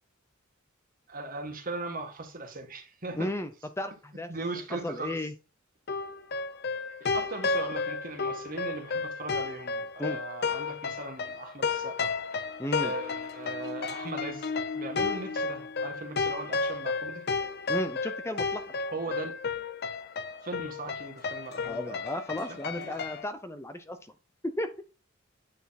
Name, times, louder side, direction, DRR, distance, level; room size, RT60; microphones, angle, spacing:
voice 1, 1.1-3.3 4.3-5.2 7.0-12.1 12.8-17.2 18.9-19.3 20.4-22.0 22.5-23.0, right 2 dB, 45° right, 1.8 m, -39 dB
voice 2, 3.1-3.5 3.8-4.3 4.8-5.3 10.0-10.2 12.6-12.9 17.7-18.6 21.6-24.1 24.6-24.7, left 1 dB, 15° left, 0.6 m, -34 dB
sound 1, 5.9-23.3, left 4 dB, 55° left, 0.7 m, -32 dB
9.4 x 4.3 x 4.2 m
head